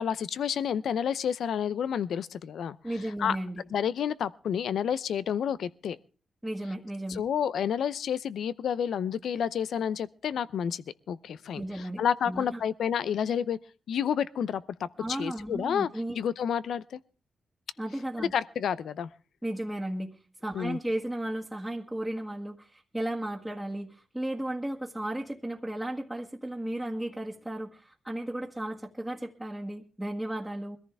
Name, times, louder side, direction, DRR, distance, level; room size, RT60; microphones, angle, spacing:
voice 1, 0.0-2.8 3.2-3.4 3.7-6.0 7.1-13.6 13.9-15.9 16.1-17.0 18.2-19.1 20.5-20.8, left 8 dB, 85° left, 0.6 m, -30 dB
voice 2, 2.8-3.7 6.4-7.2 11.5-12.6 15.0-16.2 17.8-18.3 19.4-30.8, right 1 dB, 10° right, 1.7 m, -34 dB
21.5 x 14.0 x 3.4 m
cardioid pair, 65°, 0 cm